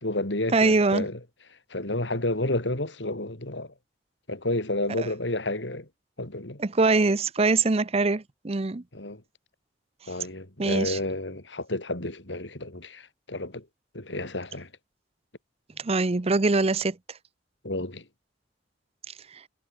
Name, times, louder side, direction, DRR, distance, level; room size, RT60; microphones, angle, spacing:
voice 1, 0.0-1.2 1.7-3.7 4.3-5.9 6.2-6.6 8.9-9.2 10.1-13.7 13.9-14.7 17.6-18.0, left 2 dB, 85° left, 4.5 m, -31 dB
voice 2, 0.5-1.1 5.0-5.1 6.6-8.8 10.6-11.0 15.8-17.0, right 3 dB, 35° right, 0.7 m, -23 dB
head